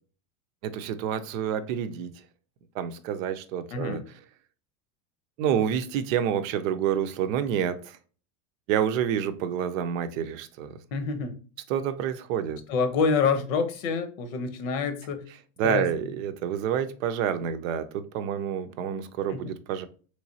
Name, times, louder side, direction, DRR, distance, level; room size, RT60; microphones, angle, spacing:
voice 1, 0.6-2.1 2.7-4.0 5.4-8.0 8.7-10.8 11.7-12.6 15.6-19.9, right 9 dB, 75° right, 0.6 m, -28 dB
voice 2, 3.7-4.0 10.9-11.4 12.7-15.2 15.6-15.9 19.3-19.5, left 5 dB, 80° left, 0.8 m, -27 dB
3.2 x 3.1 x 2.6 m
supercardioid pair, 130°, 40 cm